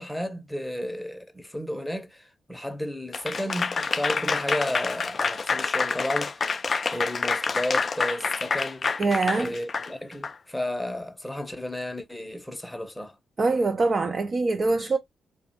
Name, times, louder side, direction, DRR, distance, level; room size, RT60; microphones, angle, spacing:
voice 1, 0.0-6.4 6.8-9.0 9.4-13.1, left 1 dB, 5° left, 0.7 m, -32 dB
Applause / Crowd, 3.1-10.3, left 4 dB, 45° left, 0.3 m, -27 dB
voice 2, 9.0-9.5 13.4-15.0, right 3 dB, 45° right, 0.4 m, -23 dB
2.4 x 2.1 x 2.8 m
hypercardioid pair, 45°, 0 cm